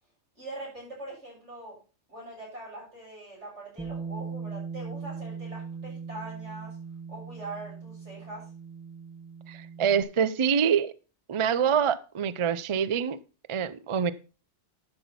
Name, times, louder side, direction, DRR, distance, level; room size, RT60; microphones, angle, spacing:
voice 1, 0.4-1.8 2.1-6.8 7.1-8.4, right 2 dB, 85° right, -4 dB, 6.9 m, -42 dB
Bass guitar, 3.8-10.0, right 5 dB, 5° right, 1.1 m, -39 dB
voice 2, 9.5-10.9 11.3-13.2 13.5-14.1, right 7 dB, 40° right, 16 dB, 0.4 m, -25 dB
11.5 x 5.9 x 5.4 m, 0.35 s
omnidirectional pair, 1.2 m